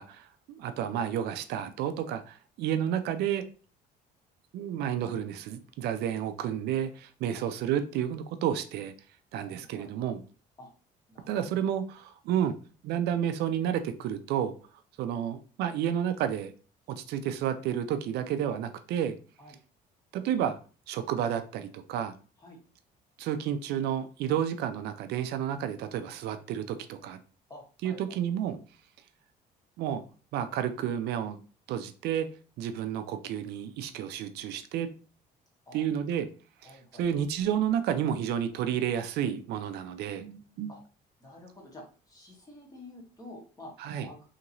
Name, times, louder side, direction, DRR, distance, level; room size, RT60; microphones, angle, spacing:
voice 1, 0.0-3.5 4.5-8.9 9.3-10.2 11.3-12.5 12.8-14.5 15.0-16.5 16.9-19.1 20.1-20.6 20.9-22.1 23.2-27.2 27.8-28.6 29.8-30.0 30.3-31.4 31.7-32.3 32.6-34.9 35.7-36.3 37.0-40.7 43.8-44.1, right 9 dB, 75° right, 9 dB, 0.4 m, -31 dB
voice 2, 9.3-9.9 10.6-10.7 11.1-11.4 19.4-19.6 22.4-22.6 27.5-28.2 35.7-35.9 36.6-37.1 40.7-40.8 41.2-43.7 44.0-44.3, left 1 dB, 20° left, -1 dB, 1.3 m, -49 dB
2.9 x 2.8 x 2.6 m, 0.37 s
cardioid pair, 110°, 17 cm